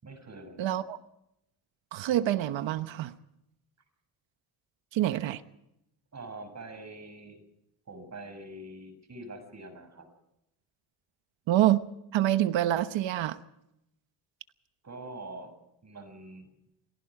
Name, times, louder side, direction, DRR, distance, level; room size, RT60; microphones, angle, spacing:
voice 1, 0.0-0.8 6.1-7.4 7.9-10.1 14.8-15.5 15.8-16.5, right 2 dB, 35° right, 9 dB, 6.7 m, -44 dB
voice 2, 0.6-1.0 1.9-3.1 4.9-5.4 11.5-11.8 12.1-13.4, right 13 dB, 85° right, 11 dB, 1.1 m, -26 dB
28.5 x 19.0 x 4.9 m, 0.83 s
cardioid pair, 100°, 44 cm